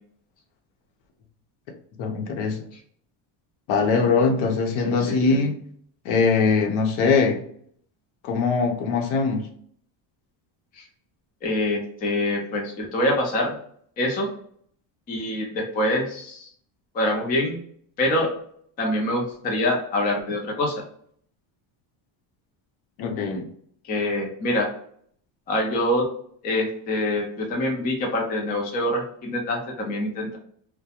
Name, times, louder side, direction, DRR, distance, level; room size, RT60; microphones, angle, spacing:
voice 1, 2.0-2.6 3.7-5.6 6.0-7.4 8.2-9.5 23.0-23.5, left 4 dB, 70° left, 3 dB, 0.8 m, -22 dB
voice 2, 4.9-5.4 10.7-10.8 11.4-13.6 14.0-14.3 15.1-16.5 16.9-17.6 18.0-18.3 18.8-20.8 23.9-24.7 25.5-26.1 26.4-30.4, left 1 dB, 20° left, 0 dB, 0.3 m, -25 dB
2.3 x 2.1 x 2.7 m, 0.63 s
cardioid pair, 150°, 50 cm